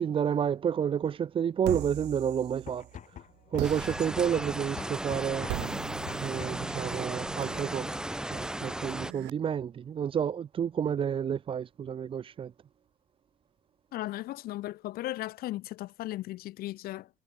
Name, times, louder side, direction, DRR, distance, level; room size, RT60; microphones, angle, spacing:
voice 1, 0.0-2.8 3.5-5.5 6.2-7.9 8.3-12.5, right 8 dB, 30° right, 0.4 m, -30 dB
sound 1, 1.6-3.0 3.6-9.3, right 21 dB, 90° right, 0.9 m, -41 dB
sound 2, 2.5-6.8, left 9 dB, 45° left, 1.2 m, -46 dB
sound 3, 3.6-9.1, right 1 dB, 5° right, 0.8 m, -35 dB
voice 2, 13.9-17.1, left 16 dB, 65° left, 0.4 m, -36 dB
cardioid pair, 110°, 17 cm